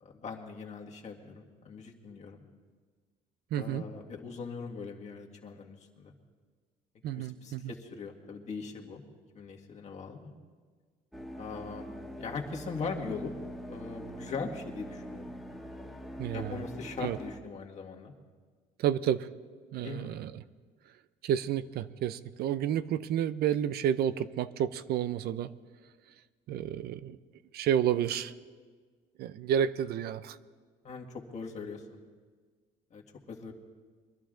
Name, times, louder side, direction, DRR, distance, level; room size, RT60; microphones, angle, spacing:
voice 1, 0.0-2.4 3.5-6.1 7.1-9.0 9.3-10.3 11.4-11.9 12.2-13.3 13.7-15.3 16.3-18.1 19.8-20.1 30.8-31.8 32.9-33.0 33.3-33.5, left 4 dB, 40° left, 0 dB, 1.9 m, -40 dB
voice 2, 3.5-3.8 7.0-7.7 16.2-16.6 17.0-17.2 18.8-19.3 19.7-20.4 21.2-25.5 26.5-27.2 27.5-28.3 29.2-30.4, right 10 dB, 70° right, 15 dB, 0.5 m, -30 dB
sound 1, 11.1-17.4, equal, ahead, 1.4 m, -43 dB
23.0 x 11.5 x 3.8 m, 1.5 s
cardioid pair, 110°, 17 cm